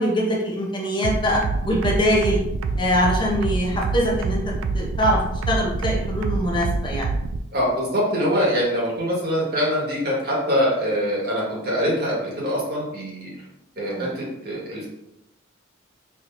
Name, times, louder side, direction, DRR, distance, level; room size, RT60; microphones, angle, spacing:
voice 1, 0.0-1.4 1.7-2.4 2.8-4.4 4.7-5.2 5.5-7.1 13.8-14.1, equal, 25° left, -3 dB, 0.6 m, -23 dB
sound 1, 1.0-7.4, right 4 dB, 80° right, 0.3 m, -26 dB
voice 2, 7.5-13.3 13.8-14.9, equal, 50° right, -5 dB, 1.4 m, -24 dB
4.4 x 2.9 x 2.6 m, 0.85 s
head